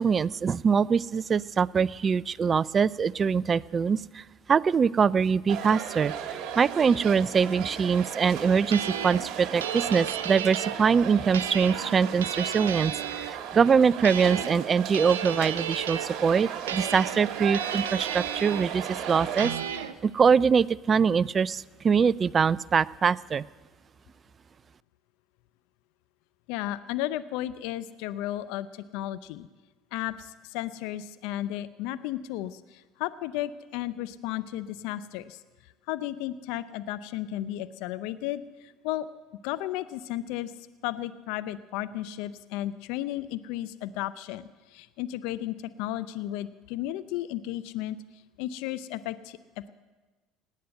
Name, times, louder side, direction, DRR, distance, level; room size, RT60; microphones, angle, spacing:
voice 1, 0.0-4.2 4.5-23.4, right 6 dB, 35° right, 20 dB, 0.4 m, -23 dB
sound 1, 5.5-19.5, right 9 dB, 60° right, 1.9 m, -36 dB
sound 2, 8.7-10.8 11.3-13.3 14.0-14.7 14.9-16.1 16.7-18.7 19.4-19.9, right 9 dB, 85° right, 0.7 m, -34 dB
voice 2, 26.5-29.5 29.9-39.1 39.4-40.5 40.8-48.0 48.4-49.7, left 14 dB, 70° left, 14 dB, 0.5 m, -34 dB
18.0 x 9.5 x 7.8 m, 1.2 s
hypercardioid pair, 70°, 0 cm